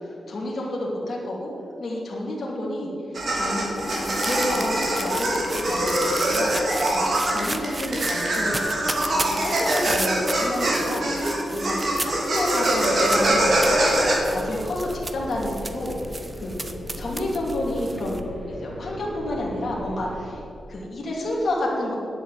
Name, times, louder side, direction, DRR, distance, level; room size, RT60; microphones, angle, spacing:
voice 1, 0.3-1.5 1.8-2.9 3.3-3.7 3.9-13.8 14.3-16.0 16.4-16.6 17.0-18.2 18.5-20.4 20.7-21.9, left 1 dB, 45° left, -4 dB, 2.8 m, -30 dB
sound 1, 3.1-14.1, right 1 dB, 50° right, 2.8 m, -24 dB
sound 2, 3.2-18.2, right 2 dB, 20° right, 0.8 m, -34 dB
sound 3, 13.0-20.3, left 1 dB, 5° left, 3.1 m, -38 dB
9.8 x 8.2 x 8.9 m, 2.6 s
wide cardioid pair, 140°, 0 cm